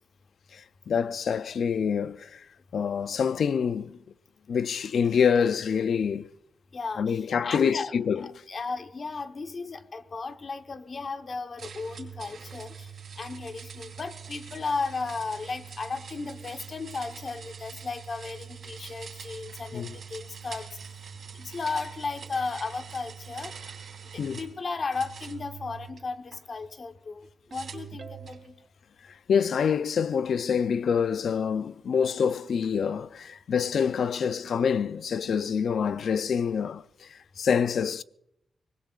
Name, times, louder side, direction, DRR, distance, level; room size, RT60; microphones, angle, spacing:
voice 1, 0.5-2.4 2.7-4.0 4.5-6.3 7.0-8.3 19.7-20.0 24.2-24.4 29.3-38.0, left 7 dB, 75° left, 0.5 m, -26 dB
voice 2, 6.7-7.9 8.2-20.9 21.3-23.5 24.0-28.6, left 4 dB, 45° left, 1.1 m, -35 dB
sound 1, 11.6-24.5 24.9-26.4 27.5-28.5, right 7 dB, 65° right, 3.4 m, -44 dB
Ringtone, 27.5-28.7, right 4 dB, 45° right, 0.7 m, -47 dB
24.5 x 20.0 x 2.5 m
wide cardioid pair, 120°, 0 cm